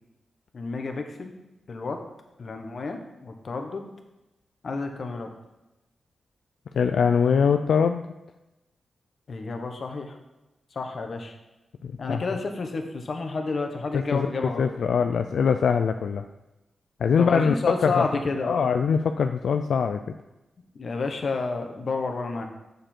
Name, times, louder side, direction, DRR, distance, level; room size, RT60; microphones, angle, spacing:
voice 1, 0.5-1.3 1.7-2.0 2.4-3.9 4.6-5.3 9.3-10.2 10.7-11.3 12.0-14.7 17.2-18.7 20.7-22.5, left 4 dB, 55° left, 4 dB, 1.2 m, -30 dB
voice 2, 6.8-8.0 11.8-12.2 13.9-16.2 17.0-17.5 17.8-18.1 18.4-20.0, left 6 dB, 80° left, 7 dB, 0.3 m, -23 dB
7.6 x 6.6 x 4.5 m, 1.0 s
cardioid pair, 85°, 0 cm